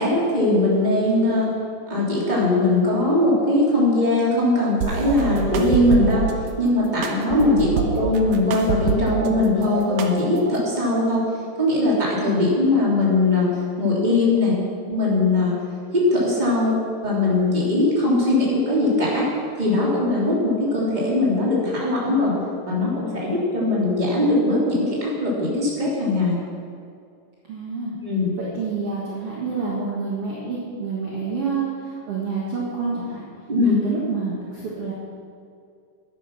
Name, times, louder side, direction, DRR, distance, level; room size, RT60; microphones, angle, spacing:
voice 1, 0.0-1.5 1.9-6.2 6.6-7.7 7.9-11.2 11.6-13.5 13.8-14.6 14.9-15.5 15.9-19.3 19.6-22.3 22.7-26.3 28.0-28.3 33.5-33.8, left 2 dB, 15° right, -6 dB, 3.1 m, -20 dB
sound 1, 4.8-6.3 7.0-9.3 9.6-10.6, right 6 dB, 75° right, 2.6 m, -26 dB
voice 2, 7.7-8.0 27.5-27.9 28.4-33.2 33.6-34.9, right 4 dB, 50° right, -5 dB, 2.3 m, -28 dB
12.0 x 10.5 x 6.1 m, 2.3 s
omnidirectional pair, 3.9 m